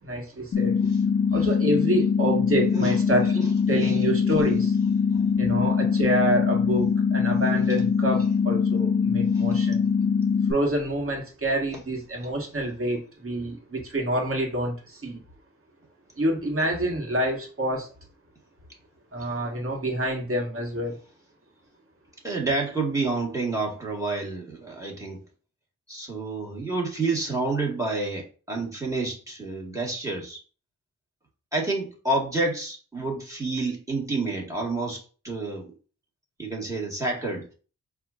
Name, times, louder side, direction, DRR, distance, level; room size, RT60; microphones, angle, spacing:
voice 1, 0.0-0.9 1.3-3.4 3.7-4.8 5.4-9.8 10.5-15.2 16.2-17.9 19.1-21.0, right 1 dB, 40° right, 1 dB, 1.5 m, -27 dB
sound 1, 0.5-10.5, left 6 dB, 40° left, 0.7 m, -23 dB
voice 2, 22.2-25.2 25.9-30.4 31.5-35.7 36.4-37.5, right 3 dB, 10° right, -1 dB, 1.6 m, -29 dB
4.3 x 2.5 x 2.4 m, 0.38 s
supercardioid pair, 40°, 32 cm